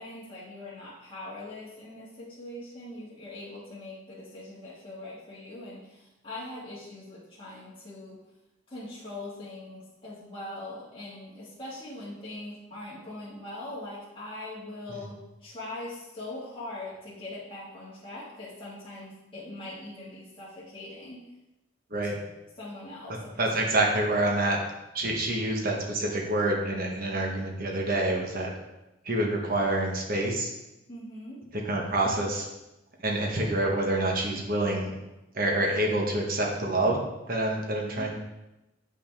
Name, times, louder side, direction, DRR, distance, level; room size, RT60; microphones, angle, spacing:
voice 1, 0.0-8.2 8.7-21.3 22.6-23.3 23.7-23.8 24.1-24.2 27.1-27.3 30.9-31.4 37.8-38.1, left 2 dB, 25° left, -9 dB, 1.8 m, -41 dB
voice 2, 21.9-22.2 23.4-24.6 24.9-28.5 29.0-30.5 31.5-32.5 33.0-34.9 35.3-37.0 37.3-38.1, right 1 dB, 45° right, 0 dB, 1.3 m, -27 dB
8.2 x 5.7 x 3.5 m, 0.96 s
head